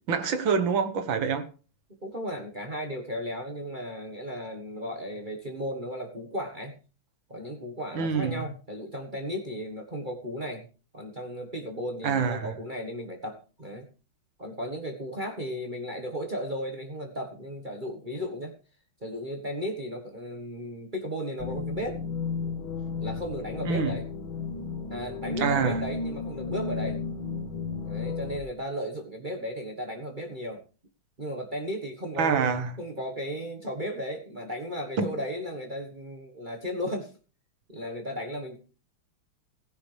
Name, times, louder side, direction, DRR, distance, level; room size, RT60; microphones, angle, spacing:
voice 1, 0.1-1.5 7.9-8.5 12.0-12.5 23.6-24.0 25.4-25.8 32.2-32.7 35.0-35.1, right 6 dB, 65° right, 2.0 m, -26 dB
voice 2, 2.0-6.8 7.3-10.7 10.9-13.9 14.4-18.5 19.0-22.0 23.0-24.1 24.9-27.0 27.8-30.6 31.2-37.1 37.7-38.6, equal, 25° right, 1.2 m, -35 dB
sound 1, 21.4-28.4, left 4 dB, 65° left, 2.1 m, -33 dB
15.5 x 10.5 x 3.3 m
omnidirectional pair, 2.4 m